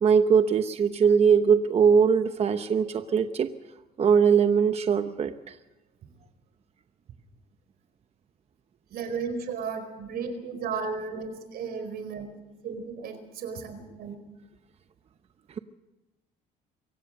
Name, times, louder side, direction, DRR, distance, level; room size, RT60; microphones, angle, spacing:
voice 1, 0.0-3.5 4.0-5.6, right 6 dB, 40° right, 9 dB, 0.9 m, -21 dB
voice 2, 8.9-12.3 12.6-14.2, right 5 dB, 65° right, 8 dB, 4.5 m, -34 dB
25.0 x 16.0 x 6.6 m, 1.1 s
cardioid pair, 110°, 17 cm